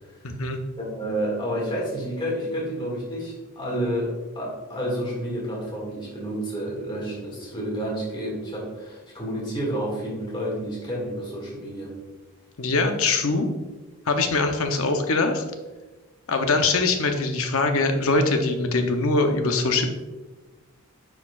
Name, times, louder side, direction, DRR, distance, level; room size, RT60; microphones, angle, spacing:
voice 1, 0.2-0.6 12.6-13.5 14.1-15.4 16.3-19.9, left 3 dB, 65° left, 5 dB, 0.7 m, -22 dB
voice 2, 0.8-11.9, equal, 20° left, -4 dB, 1.9 m, -30 dB
9.6 x 4.6 x 2.4 m, 1.2 s
head